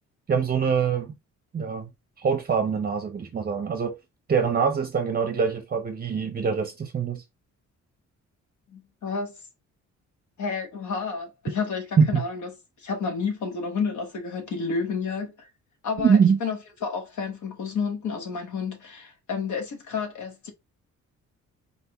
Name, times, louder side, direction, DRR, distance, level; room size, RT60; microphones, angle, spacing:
voice 1, 0.3-1.1 1.5-1.9 2.2-3.9 4.3-7.2 12.0-12.2 16.0-16.4, right 6 dB, 30° right, 0.6 m, -23 dB
voice 2, 8.7-9.3 10.4-12.5 12.8-15.5 15.8-20.5, left 5 dB, 75° left, 1.2 m, -30 dB
4.2 x 3.3 x 2.9 m
cardioid pair, 115°, 30 cm